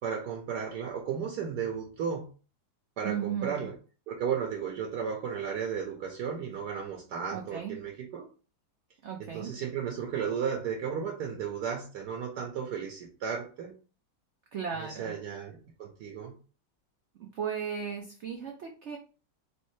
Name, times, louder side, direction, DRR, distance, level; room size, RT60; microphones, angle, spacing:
voice 1, 0.0-2.3 3.0-3.7 4.1-8.3 9.2-13.7 14.8-16.4, right 7 dB, 70° right, 1.2 m, -34 dB
voice 2, 3.0-3.7 7.3-7.8 9.0-9.6 14.5-15.1 17.3-19.0, right 7 dB, 90° right, 0.6 m, -35 dB
3.2 x 3.2 x 3.1 m
omnidirectional pair, 1.9 m